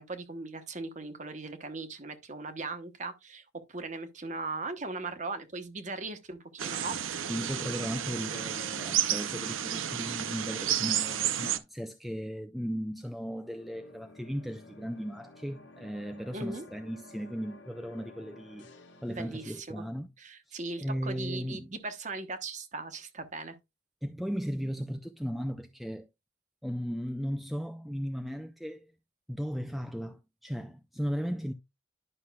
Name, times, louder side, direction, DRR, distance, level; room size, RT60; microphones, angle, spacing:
voice 1, 0.0-7.0 16.3-16.6 19.1-19.8 20.2-23.6, right 3 dB, 40° right, 1.0 m, -39 dB
sound 1, 6.6-11.6, right 10 dB, 90° right, 0.6 m, -31 dB
voice 2, 7.3-18.7 19.0-20.1 20.5-21.8 24.0-26.1 26.6-28.9 29.3-31.5, equal, ahead, 0.3 m, -36 dB
sound 2, 13.2-19.6, left 2 dB, 65° left, 1.2 m, -53 dB
11.0 x 5.7 x 2.3 m
head